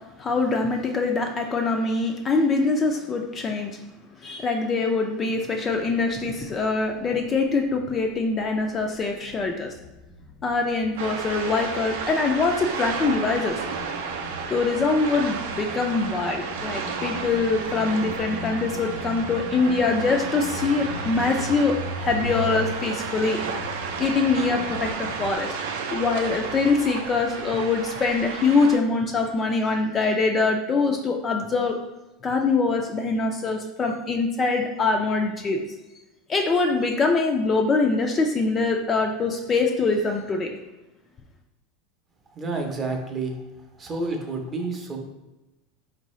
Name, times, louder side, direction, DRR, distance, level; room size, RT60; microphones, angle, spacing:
voice 1, 0.2-3.8 4.2-9.7 10.4-13.6 14.5-23.4 24.0-25.5 25.9-31.8 32.2-35.6 36.3-40.5, left 3 dB, 20° left, 3 dB, 0.3 m, -23 dB
sound 1, 5.7-7.3 7.6-25.4, left 1 dB, 55° left, 0.6 m, -39 dB
sound 2, 11.0-28.8, right 5 dB, 85° right, 0.5 m, -32 dB
voice 2, 42.3-45.0, right 3 dB, 20° right, 2 dB, 0.6 m, -30 dB
4.5 x 2.6 x 3.1 m, 1.0 s
supercardioid pair, 155°, 0 cm